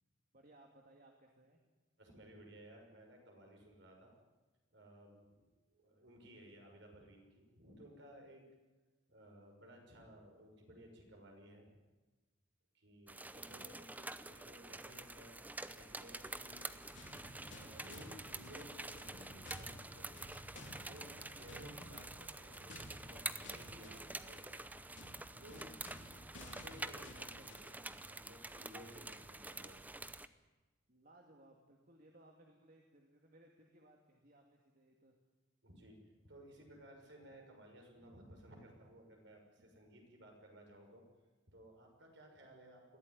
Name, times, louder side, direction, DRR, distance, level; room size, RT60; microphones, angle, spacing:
voice 1, 0.3-1.6 13.7-14.1 30.9-35.1 39.6-39.7, right 1 dB, 45° right, 1 dB, 2.4 m, -64 dB
voice 2, 2.0-4.1 4.7-8.4 9.1-11.7 12.7-15.4 15.7-16.7 17.5-20.2 20.8-24.6 25.3-25.9 26.3-30.1 35.6-36.0 36.2-41.0 41.5-43.0, equal, 65° right, 2 dB, 6.3 m, -58 dB
sound 1, 13.1-30.3, right 2 dB, 10° right, 0.7 m, -48 dB
sound 2, 16.5-27.8, left 1 dB, 65° left, 3.8 m, -55 dB
21.5 x 15.5 x 9.9 m, 1.2 s
head